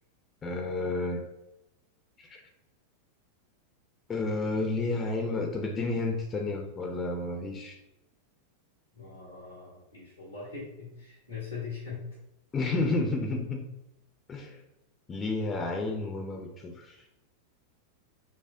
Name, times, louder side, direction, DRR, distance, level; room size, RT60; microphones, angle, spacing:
voice 1, 0.4-1.2 2.2-2.4 4.1-7.8 12.5-13.6 14.3-14.6 15.1-17.0, left 2 dB, 20° left, 3 dB, 0.4 m, -31 dB
voice 2, 8.9-12.0, left 5 dB, 90° right, -11 dB, 1.3 m, -41 dB
5.8 x 2.1 x 2.5 m, 0.88 s
figure-of-eight pair, 90°, 0 cm